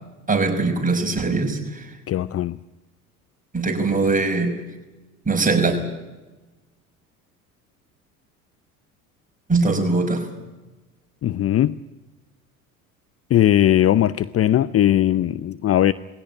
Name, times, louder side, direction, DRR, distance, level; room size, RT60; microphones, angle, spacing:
voice 1, 0.3-1.9 3.5-4.5 5.3-5.8 9.5-10.3, right 3 dB, 20° right, 5.8 m, -21 dB
voice 2, 2.1-2.6 11.2-11.8 13.3-15.9, left 12 dB, 35° left, 0.6 m, -19 dB
21.0 x 17.0 x 10.0 m
hypercardioid pair, 70°, 43 cm